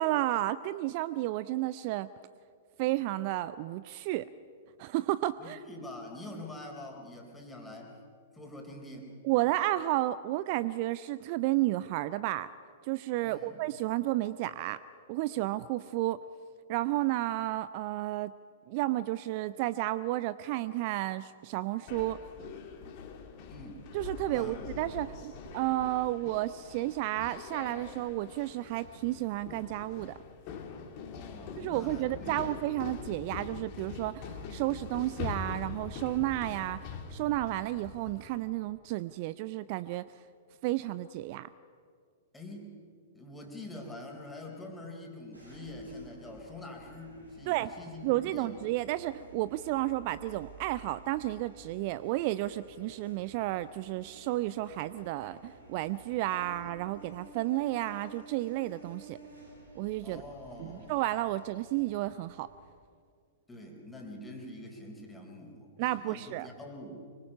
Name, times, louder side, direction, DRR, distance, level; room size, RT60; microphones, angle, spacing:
voice 1, 0.0-2.1 2.8-4.3 4.8-5.6 9.2-12.5 12.8-14.8 15.1-16.2 16.7-18.3 18.7-22.3 23.9-30.2 31.6-40.1 40.6-41.5 47.5-47.7 48.0-59.2 59.8-60.2 60.6-62.5 65.8-66.5, right 16 dB, 40° right, 17 dB, 0.4 m, -32 dB
voice 2, 5.4-7.9 8.3-9.1 13.2-13.6 23.5-23.8 24.3-24.7 31.1-32.6 42.3-42.8 43.1-48.5 60.0-61.0 63.5-67.1, left 1 dB, 10° left, 1 dB, 4.2 m, -45 dB
sound 1, 21.9-38.4, left 5 dB, 40° left, 2.4 m, -43 dB
sound 2, 45.3-62.7, right 3 dB, 85° right, 6.6 m, -53 dB
25.5 x 23.5 x 5.6 m, 2.1 s
figure-of-eight pair, 105°, 0 cm